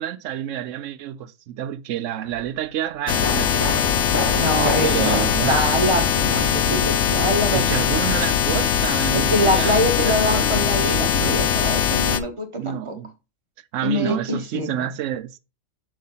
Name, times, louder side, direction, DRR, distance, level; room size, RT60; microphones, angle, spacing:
voice 1, 0.0-3.9 4.8-5.6 7.5-11.5 12.6-13.1 13.7-15.4, right 11 dB, 75° right, 0.9 m, -29 dB
sound 1, 2.2-2.4 3.2-7.3 7.6-7.7, left 1 dB, 15° left, 1.7 m, -30 dB
sound 2, 3.1-12.2, left 8 dB, 70° left, 0.9 m, -21 dB
voice 2, 4.3-5.2 5.5-7.6 9.1-12.9 13.8-14.9, equal, 25° right, 1.2 m, -24 dB
7.3 x 3.1 x 5.7 m
omnidirectional pair, 1.3 m